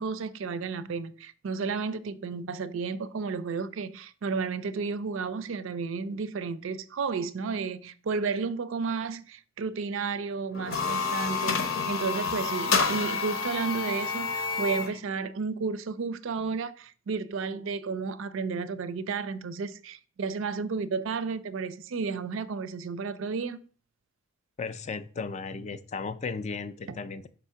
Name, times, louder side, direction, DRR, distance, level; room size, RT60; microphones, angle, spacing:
voice 1, 0.0-23.6 26.9-27.0, right 5 dB, 65° right, 0.4 m, -32 dB
sound 1, 10.5-15.0, left 5 dB, 65° left, 0.8 m, -29 dB
voice 2, 24.6-27.3, left 4 dB, 35° left, 0.3 m, -35 dB
4.9 x 3.6 x 5.6 m
head